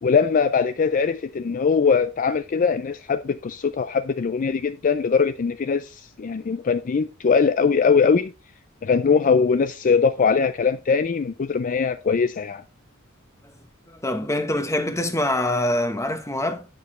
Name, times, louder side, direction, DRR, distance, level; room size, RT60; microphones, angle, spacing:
voice 1, 0.0-8.3 8.8-12.6, left 5 dB, 40° left, 0.4 m, -21 dB
voice 2, 13.9-16.7, left 1 dB, 15° left, 1.0 m, -24 dB
9.4 x 6.6 x 3.1 m
head